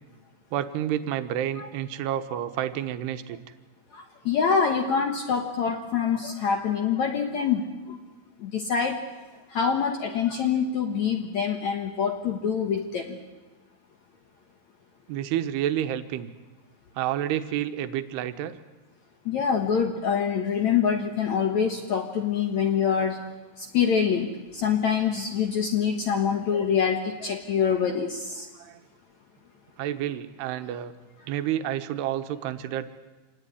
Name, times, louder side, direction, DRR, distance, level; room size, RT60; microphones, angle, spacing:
voice 1, 0.5-3.4 15.1-16.3 17.0-18.6 28.6-28.8 29.8-30.9 31.3-32.9, right 11 dB, 75° right, 10 dB, 2.9 m, -29 dB
voice 2, 3.9-8.0 8.4-9.0 9.5-13.2 19.3-23.2 23.6-28.5, left 7 dB, 65° left, 4 dB, 1.8 m, -25 dB
26.0 x 18.5 x 9.9 m, 1.2 s
omnidirectional pair, 5.2 m